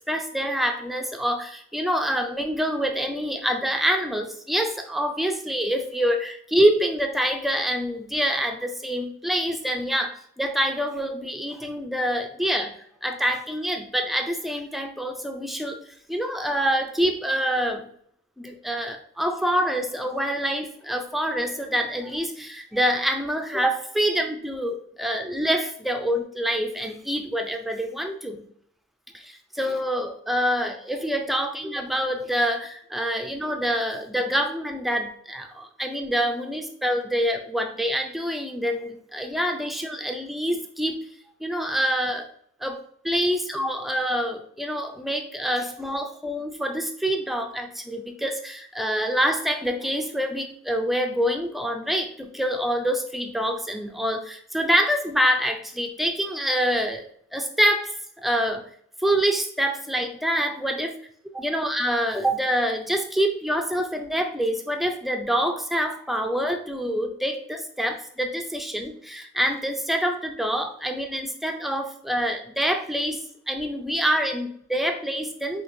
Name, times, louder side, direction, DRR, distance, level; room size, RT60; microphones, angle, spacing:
voice 1, 0.1-15.8 16.1-17.9 18.4-28.5 29.1-41.0 41.4-42.3 42.6-42.8 43.0-58.6 59.0-61.0 61.3-75.6, equal, ahead, 5 dB, 0.3 m, -26 dB
5.3 x 2.9 x 2.6 m, 0.64 s
head